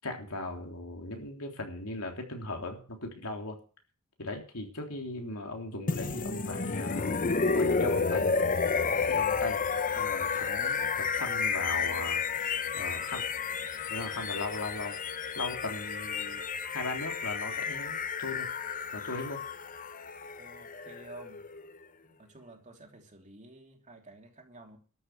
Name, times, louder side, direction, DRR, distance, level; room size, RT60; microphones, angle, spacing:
voice 1, 0.0-3.6 4.2-7.1 7.5-8.3 9.1-9.6 9.9-13.2 13.9-15.0 15.3-16.4 16.7-18.5 18.9-19.4, left 2 dB, 75° left, 3.5 m, -38 dB
sound 1, 5.9-21.8, left 5 dB, 40° left, 0.9 m, -31 dB
voice 2, 20.4-21.5 22.0-24.8, right 2 dB, 35° right, 3.0 m, -51 dB
13.0 x 8.0 x 8.6 m
head